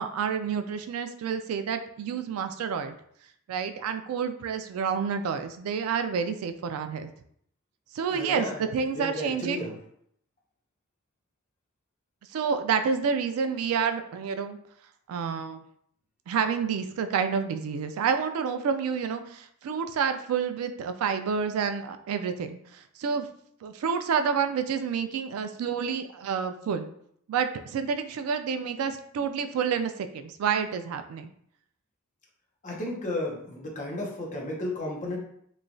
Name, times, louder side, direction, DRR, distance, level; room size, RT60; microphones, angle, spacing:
voice 1, 0.0-2.9 3.5-7.1 7.9-9.6 12.3-14.6 15.1-15.6 16.3-23.3 23.6-26.9 27.3-31.3, right 6 dB, 85° right, 9 dB, 0.3 m, -29 dB
voice 2, 8.1-9.7 32.6-35.2, left 1 dB, 35° left, -2 dB, 0.7 m, -33 dB
3.0 x 2.2 x 2.5 m, 0.67 s
head